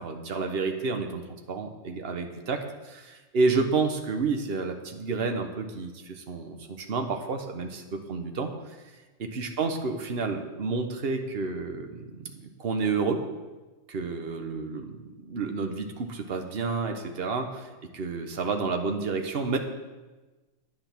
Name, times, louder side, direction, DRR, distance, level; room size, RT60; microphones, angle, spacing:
voice 1, 0.0-8.5 9.2-13.2 13.9-17.7 17.9-19.6, right 4 dB, 40° right, 4 dB, 1.1 m, -30 dB
10.5 x 9.5 x 6.0 m, 1.2 s
omnidirectional pair, 2.0 m